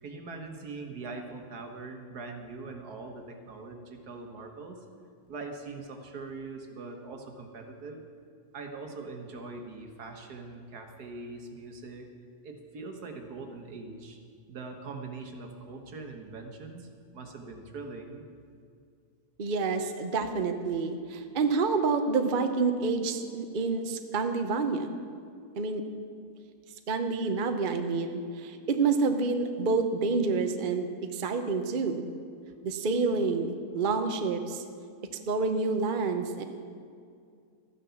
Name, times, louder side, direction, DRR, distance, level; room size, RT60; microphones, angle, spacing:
voice 1, 0.0-4.8 5.3-8.1 8.5-12.1 12.4-14.2 14.5-18.2, right 3 dB, 70° right, 4 dB, 1.9 m, -42 dB
voice 2, 19.4-24.9 25.6-25.8 26.9-32.0 32.6-34.6 35.3-36.4, right 4 dB, 40° right, 6 dB, 0.8 m, -28 dB
13.0 x 9.8 x 7.1 m, 2.3 s
omnidirectional pair, 1.7 m